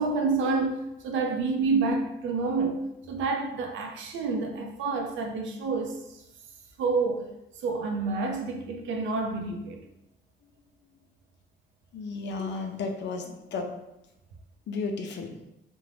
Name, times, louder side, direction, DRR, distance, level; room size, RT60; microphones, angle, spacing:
voice 1, 0.0-6.2 6.8-7.4 7.6-9.8, right 4 dB, 75° right, 3 dB, 0.5 m, -28 dB
voice 2, 11.9-13.7 14.7-15.4, left 4 dB, 65° left, 4 dB, 0.5 m, -33 dB
2.5 x 2.1 x 3.2 m, 0.88 s
cardioid pair, 90°, 20 cm